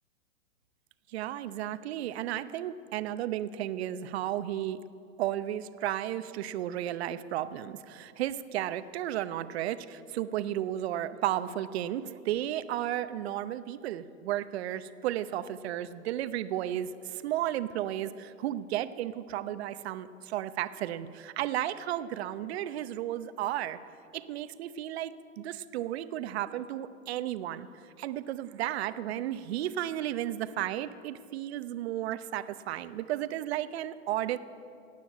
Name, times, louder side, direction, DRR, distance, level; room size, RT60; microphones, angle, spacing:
voice 1, 1.1-4.8 5.2-23.8 24.1-27.7 28.0-34.4, right 12 dB, 50° right, 13 dB, 0.8 m, -33 dB
16.5 x 9.4 x 8.5 m, 2.5 s
hypercardioid pair, 125°, 40 cm